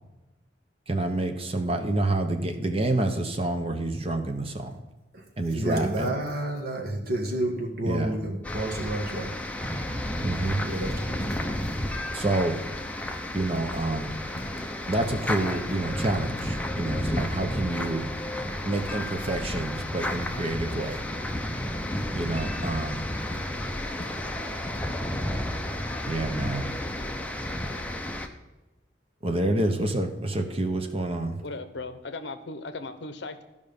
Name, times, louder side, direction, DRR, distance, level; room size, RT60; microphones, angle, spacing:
voice 1, 0.9-4.8 5.4-6.1 7.8-8.1 10.2-10.6 12.1-12.6 13.3-14.1 14.9-18.1 18.6-21.0 22.1-23.0 26.1-26.7 29.2-31.4, right 2 dB, 30° right, 5 dB, 0.9 m, -28 dB
voice 2, 5.5-9.3 10.6-11.2, right 1 dB, 50° right, 1 dB, 1.7 m, -30 dB
sound 1, 8.4-28.3, left 1 dB, 5° left, 0.6 m, -32 dB
sound 2, 10.0-25.1, left 1 dB, 35° left, 1.9 m, -47 dB
voice 3, 31.4-33.4, left 3 dB, 65° left, 10 dB, 0.8 m, -37 dB
13.0 x 5.3 x 5.2 m, 1.1 s
head